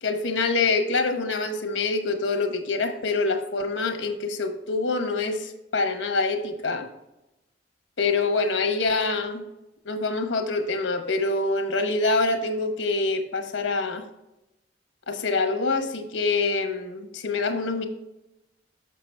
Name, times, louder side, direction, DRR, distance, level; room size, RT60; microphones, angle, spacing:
voice 1, 0.0-6.9 8.0-9.4 9.8-14.1 15.1-17.9, left 3 dB, 85° left, 6 dB, 1.0 m, -25 dB
6.7 x 5.7 x 3.3 m, 0.93 s
head